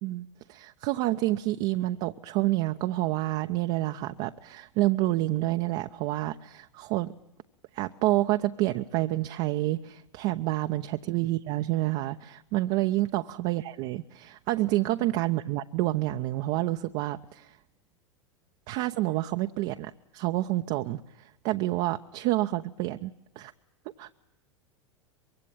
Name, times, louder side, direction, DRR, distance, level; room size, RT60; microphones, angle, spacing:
voice 1, 0.5-7.1 7.7-17.6 18.7-23.5 24.0-24.1, right 17 dB, 45° right, 6 dB, 0.9 m, -28 dB
24.5 x 23.0 x 8.8 m, 0.80 s
figure-of-eight pair, 90°, 15 cm